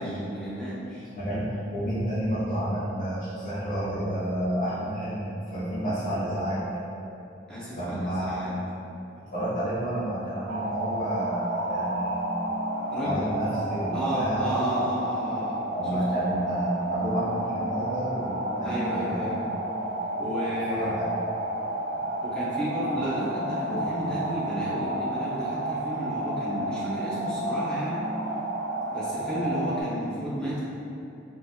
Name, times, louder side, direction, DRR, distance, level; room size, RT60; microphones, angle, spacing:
voice 1, 0.0-1.1 7.5-8.6 12.9-13.2 13.9-15.6 15.9-16.0 18.6-19.4 20.2-21.0 22.2-28.0 28.9-30.6, right 1 dB, 5° left, -10 dB, 0.8 m, -32 dB
voice 2, 1.1-6.6 7.7-8.5 9.3-12.5 13.0-14.5 15.7-19.4 20.7-21.1 22.9-23.0 23.6-24.2, right 1 dB, 45° left, -13 dB, 0.9 m, -30 dB
sound 1, 10.5-29.8, right 1 dB, 70° right, 0.5 m, -31 dB
3.9 x 2.4 x 2.8 m, 2.8 s
head